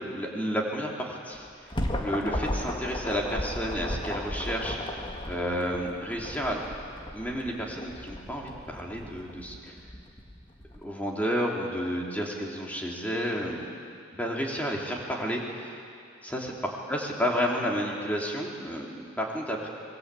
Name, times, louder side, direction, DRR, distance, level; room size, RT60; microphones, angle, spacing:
voice 1, 0.0-1.5 1.9-6.6 7.1-9.7 10.8-13.7 14.1-15.7 16.2-19.7, equal, 10° left, -2 dB, 3.4 m, -31 dB
sound 1, 1.3-10.8, left 1 dB, 25° left, 1.9 m, -35 dB
25.0 x 21.5 x 8.6 m, 2.3 s
head